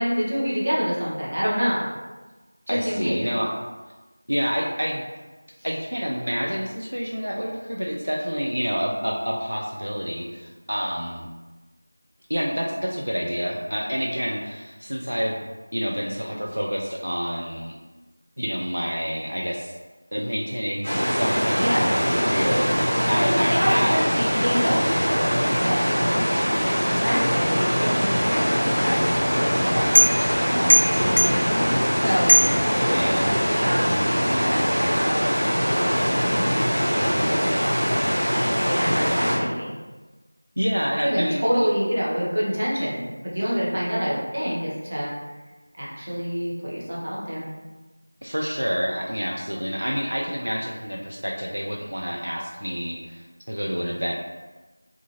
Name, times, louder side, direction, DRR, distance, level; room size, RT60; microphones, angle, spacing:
voice 1, 0.0-1.9 2.7-3.3 21.6-21.9 23.1-26.2 26.8-29.9 30.4-32.3 32.7-35.4 35.6-38.0 38.5-39.8 41.0-45.1 45.8-47.5, equal, 35° right, -6 dB, 0.6 m, -27 dB
voice 2, 2.7-3.5 4.3-5.0 5.6-11.3 12.3-15.4 15.7-17.8 18.4-19.7 20.1-24.1 32.9-33.3 40.6-41.7 48.2-54.2, equal, 65° right, -2 dB, 0.3 m, -28 dB
sound 1, 20.8-39.4, equal, 15° right, 1.1 m, -22 dB
sound 2, 28.7-33.4, equal, 70° left, 0.4 m, -23 dB
2.4 x 2.3 x 2.9 m, 1.2 s
figure-of-eight pair, 175°, 0 cm